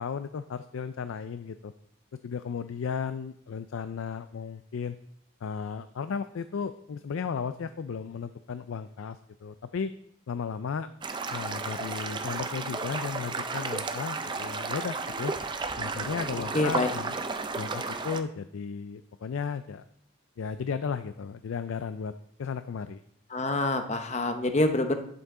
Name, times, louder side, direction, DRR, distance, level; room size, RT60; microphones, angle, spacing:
voice 1, 0.0-1.7 2.2-5.0 5.4-9.9 10.3-10.9 11.3-15.3 15.8-17.2 17.6-19.8 20.4-22.1 22.4-23.0, left 6 dB, 80° left, 11 dB, 0.4 m, -35 dB
sound 1, 11.0-18.2, right 4 dB, 20° right, 0.4 m, -33 dB
voice 2, 16.5-16.9 23.3-24.9, left 2 dB, 35° left, 7 dB, 0.7 m, -26 dB
11.0 x 6.9 x 3.7 m, 0.72 s
head